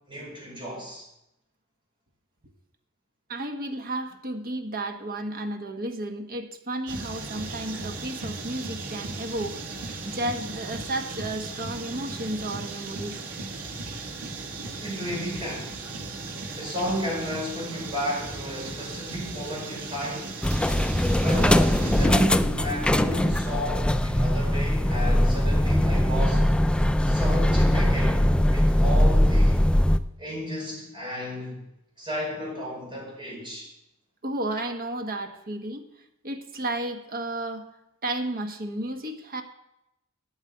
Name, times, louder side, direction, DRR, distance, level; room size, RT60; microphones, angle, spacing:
voice 1, 0.1-1.0 14.8-15.9 16.6-20.4 21.2-26.4 27.1-28.2 28.5-29.7 30.2-31.6 32.0-33.7, equal, 25° right, 5.1 m, -33 dB
voice 2, 3.3-13.2 34.2-35.8 36.2-37.6 38.0-39.4, right 1 dB, 45° right, 1.4 m, -32 dB
sound 1, 6.9-22.1, right 3 dB, 85° right, 2.3 m, -37 dB
sound 2, 20.4-30.0, left 1 dB, 5° left, 0.3 m, -21 dB
9.3 x 9.2 x 7.9 m
head